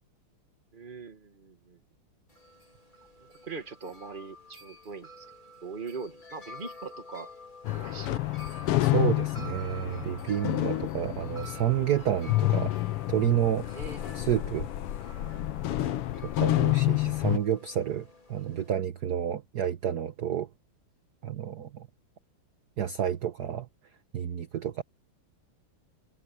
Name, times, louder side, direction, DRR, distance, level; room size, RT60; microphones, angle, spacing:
voice 1, 0.7-1.8 3.2-5.3 5.6-7.3 7.7-8.3 13.7-14.2 15.7-16.1, right 4 dB, 25° right, 1.9 m, -42 dB
Wind chime, 2.3-18.8, left 1 dB, 20° left, 4.2 m, -49 dB
sound 1, 7.6-17.4, left 17 dB, 85° left, 1.8 m, -29 dB
voice 2, 8.8-12.7 13.1-13.7 14.1-14.7 16.4-20.5 21.2-21.9 22.8-23.7 24.1-24.8, right 10 dB, 55° right, 1.4 m, -29 dB
omnidirectional pair, 2.4 m